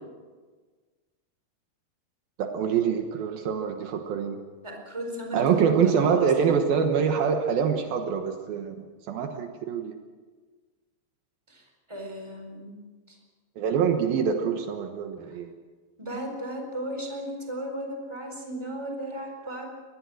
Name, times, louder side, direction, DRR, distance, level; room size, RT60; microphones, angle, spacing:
voice 1, 2.4-4.4 5.3-9.9 13.6-15.5, right 7 dB, 70° right, 5 dB, 2.9 m, -25 dB
voice 2, 4.6-6.6 11.5-11.6 11.9-12.7 13.1-13.2 16.0-19.7, right 1 dB, 5° right, 3 dB, 3.9 m, -35 dB
24.0 x 19.5 x 6.3 m, 1.4 s
omnidirectional pair, 4.5 m